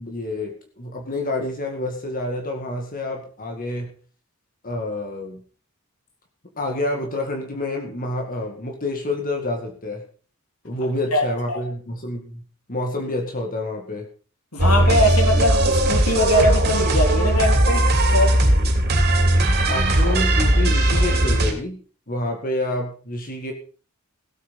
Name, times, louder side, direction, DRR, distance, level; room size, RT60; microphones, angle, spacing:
voice 1, 0.0-3.9 4.6-5.4 6.6-10.0 10.6-12.4 12.7-14.1 19.7-21.8 22.1-23.5, left 2 dB, 40° left, 3 dB, 2.2 m, -28 dB
voice 2, 11.1-11.6 14.5-17.8 18.1-18.4, left 1 dB, 80° left, 3 dB, 3.2 m, -21 dB
sound 1, 14.6-21.5, right 1 dB, 50° right, 3.3 m, -18 dB
16.5 x 8.6 x 5.5 m, 0.40 s
head